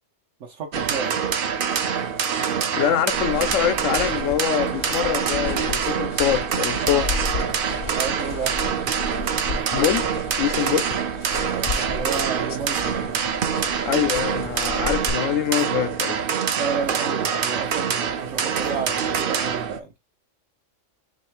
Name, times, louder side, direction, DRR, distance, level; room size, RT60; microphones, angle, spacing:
voice 1, 0.4-1.4 7.9-8.6 11.5-13.1 16.5-19.9, right 5 dB, 75° right, 1.1 m, -31 dB
sound 1, 0.7-19.8, right 7 dB, 55° right, 0.6 m, -25 dB
voice 2, 2.8-7.1 9.7-10.9 13.8-16.2, left 10 dB, 80° left, 1.0 m, -24 dB
sound 2, 3.1-15.1, left 4 dB, 50° left, 0.5 m, -34 dB
3.2 x 3.0 x 4.4 m
omnidirectional pair, 1.3 m